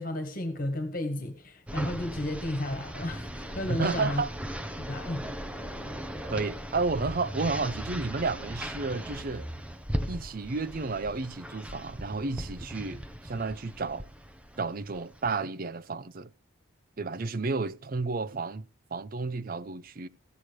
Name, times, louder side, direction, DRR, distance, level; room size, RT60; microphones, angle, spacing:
voice 1, 0.0-4.2 4.8-5.3, left 1 dB, 45° left, 2.0 m, -33 dB
sound 1, 1.7-15.3, equal, 5° right, 0.9 m, -38 dB
voice 2, 3.7-4.3 6.2-9.5 10.1-14.1 14.6-16.3 17.0-18.7 18.9-20.1, right 3 dB, 45° right, 0.6 m, -32 dB
15.0 x 9.1 x 4.8 m
head